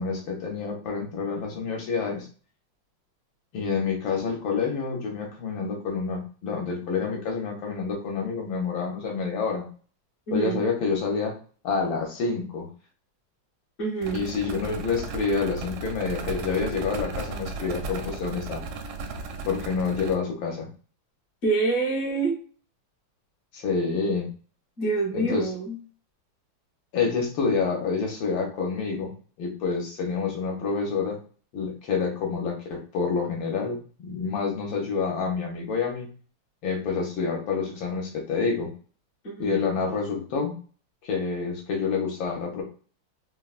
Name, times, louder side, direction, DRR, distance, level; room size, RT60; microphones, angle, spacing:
voice 1, 0.0-2.3 3.5-9.7 10.3-11.3 11.6-12.7 14.1-18.6 19.5-20.7 23.5-24.3 25.1-25.5 26.9-29.1 29.4-31.2 31.5-36.1 36.6-38.7 39.4-40.6 41.0-42.6, left 5 dB, 70° left, 1 dB, 1.4 m, -28 dB
voice 2, 10.3-10.6 13.8-14.2 21.4-22.4 24.8-25.8 39.2-39.6, right 3 dB, 40° left, -3 dB, 0.9 m, -26 dB
sound 1, 14.0-20.1, right 3 dB, 85° right, 1.4 m, -35 dB
3.7 x 2.2 x 2.3 m, 0.40 s
omnidirectional pair, 2.3 m